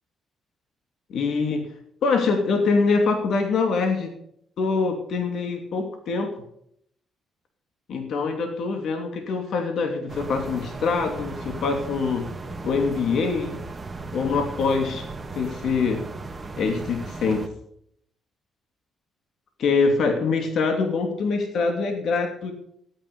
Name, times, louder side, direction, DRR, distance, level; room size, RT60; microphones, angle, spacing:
voice 1, 1.1-1.7 2.0-4.1 4.6-6.3 7.9-12.3 12.6-13.6 14.1-15.0 15.3-16.0 16.6-17.5 19.6-22.5, left 4 dB, 65° left, 4 dB, 2.8 m, -24 dB
sound 1, 10.1-17.5, right 3 dB, 25° right, 1.8 m, -36 dB
14.0 x 10.0 x 5.5 m, 0.69 s
cardioid pair, 90°, 0 cm